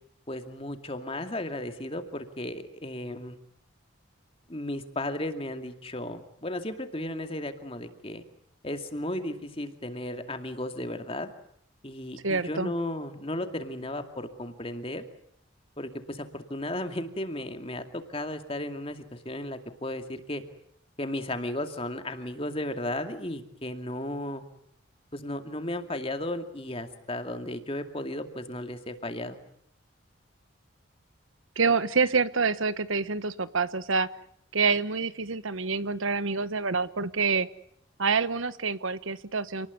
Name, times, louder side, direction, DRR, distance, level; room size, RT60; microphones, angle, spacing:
voice 1, 0.3-3.4 4.5-8.2 8.6-11.3 11.8-15.0 15.8-20.4 21.0-24.4 25.1-29.4, left 1 dB, 30° left, 7 dB, 2.4 m, -35 dB
voice 2, 12.2-12.7 31.6-34.1 34.5-37.5 38.0-39.7, right 4 dB, 80° right, 15 dB, 1.2 m, -27 dB
28.5 x 19.5 x 9.5 m, 0.71 s
head